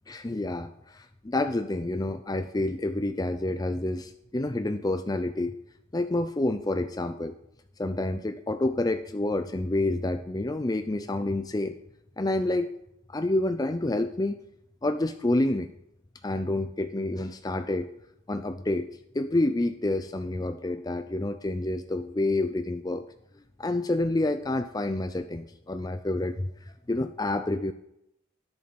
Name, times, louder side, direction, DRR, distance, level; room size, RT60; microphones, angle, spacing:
voice 1, 0.1-5.5 5.9-7.3 7.8-11.8 12.2-12.7 13.1-14.4 14.8-15.7 16.2-17.9 18.3-18.9 19.1-23.0 23.6-26.5 26.9-27.7, left 2 dB, 20° left, 9 dB, 0.5 m, -28 dB
13.0 x 10.5 x 5.4 m, 0.81 s
head